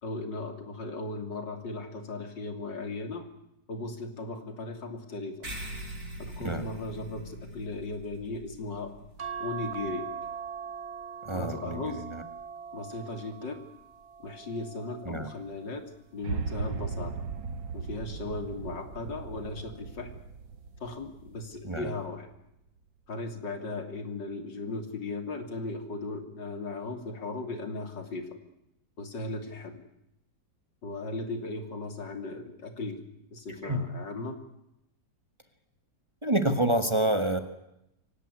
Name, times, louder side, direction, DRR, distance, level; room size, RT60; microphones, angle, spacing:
voice 1, 0.0-3.3 3.7-5.4 6.2-8.9 9.4-10.2 11.3-12.0 12.7-13.6 14.2-15.9 16.1-17.3 17.7-20.1 20.8-22.3 23.1-28.4 29.0-29.8 30.8-33.0 33.3-34.4, left 3 dB, 80° left, 7 dB, 3.7 m, -37 dB
sound 1, 5.4-10.3, equal, 55° right, 5.7 m, -43 dB
sound 2, 9.2-15.8 16.4-17.8 19.1-19.5 19.8-19.9, right 7 dB, 40° right, 1.7 m, -42 dB
voice 2, 11.2-12.2 15.1-15.3 21.6-21.9 33.5-33.9 36.2-37.4, right 1 dB, 15° right, 9 dB, 1.7 m, -28 dB
sound 3, 16.2-22.4, right 5 dB, 85° right, 1.8 m, -38 dB
24.5 x 18.5 x 9.8 m, 0.85 s
omnidirectional pair, 1.9 m